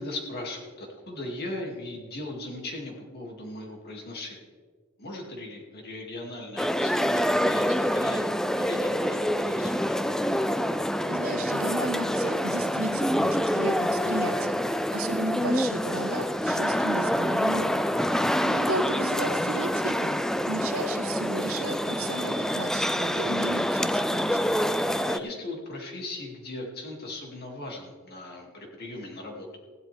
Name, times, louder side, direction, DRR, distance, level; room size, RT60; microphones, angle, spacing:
voice 1, 0.0-4.4 5.0-9.8 18.1-18.7 25.1-29.5, left 2 dB, 50° left, 0 dB, 2.5 m, -38 dB
sound 1, 6.6-25.2, equal, ahead, 0.3 m, -26 dB
voice 2, 11.1-14.6 14.9-18.0 18.4-20.2 20.5-24.5, right 2 dB, 85° right, 6 dB, 1.3 m, -34 dB
16.5 x 12.0 x 3.5 m, 1.5 s
head